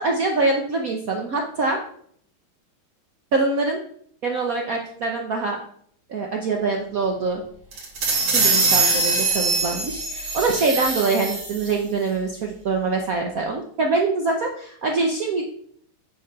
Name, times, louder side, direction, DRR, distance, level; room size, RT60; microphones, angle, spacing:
voice 1, 0.0-1.8 3.3-3.8 4.2-5.6 6.1-7.4 8.3-15.5, right 3 dB, 55° right, 2 dB, 1.1 m, -24 dB
sound 1, 7.7-11.7, right 3 dB, 85° right, 3.1 m, -22 dB
9.2 x 4.0 x 5.6 m, 0.63 s
omnidirectional pair, 2.2 m